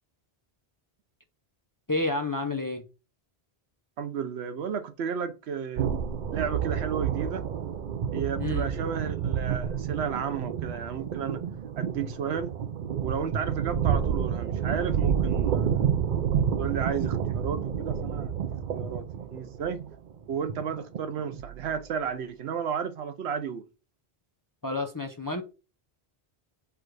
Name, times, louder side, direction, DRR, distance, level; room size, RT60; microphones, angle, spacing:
voice 1, 1.9-2.8 8.4-8.7 24.6-25.4, left 2 dB, 30° left, 0.4 m, -30 dB
voice 2, 4.0-6.0 6.3-7.5 8.1-11.4 11.8-12.5 13.0-15.9 16.6-18.3 18.7-19.9 20.3-23.6, right 7 dB, 85° right, 1.0 m, -33 dB
sound 1, 5.8-21.9, right 8 dB, 55° right, 0.6 m, -29 dB
4.7 x 2.4 x 4.6 m
omnidirectional pair, 1.1 m